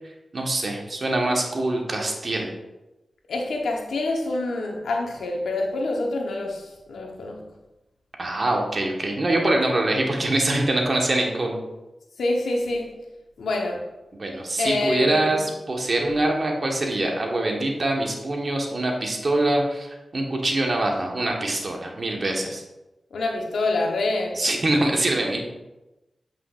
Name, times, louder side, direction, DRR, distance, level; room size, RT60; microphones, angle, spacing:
voice 1, 0.3-2.5 8.2-11.6 14.2-22.6 24.3-25.4, right 1 dB, 55° right, 1 dB, 1.4 m, -24 dB
voice 2, 3.3-7.4 12.2-12.9 13.4-13.9 14.6-15.5 23.1-24.4, left 2 dB, 90° left, 1 dB, 1.1 m, -26 dB
7.7 x 6.0 x 2.5 m, 1.0 s
cardioid pair, 40°, 0 cm